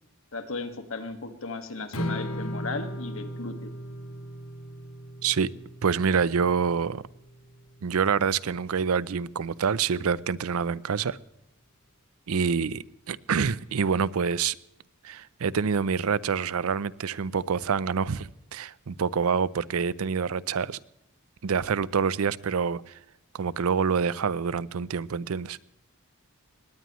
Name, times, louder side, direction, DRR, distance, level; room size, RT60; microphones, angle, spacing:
voice 1, 0.3-3.7, left 3 dB, 70° left, 7 dB, 1.8 m, -36 dB
Strum, 1.9-8.2, equal, 85° left, 1.8 m, -37 dB
voice 2, 5.2-5.5 5.8-7.0 7.8-11.2 12.3-14.6 15.0-20.8 21.4-23.0 23.3-25.6, right 6 dB, 80° right, 20 dB, 0.5 m, -26 dB
20.5 x 18.5 x 3.1 m, 0.84 s
head